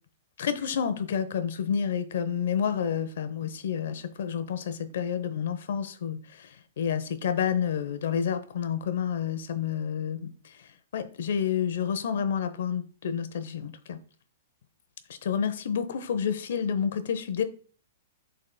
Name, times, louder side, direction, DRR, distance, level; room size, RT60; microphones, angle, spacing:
voice 1, 0.4-14.0 15.2-17.4, left 8 dB, 70° left, 0.8 m, -29 dB
11.0 x 4.1 x 2.2 m
hypercardioid pair, 155°, 0 cm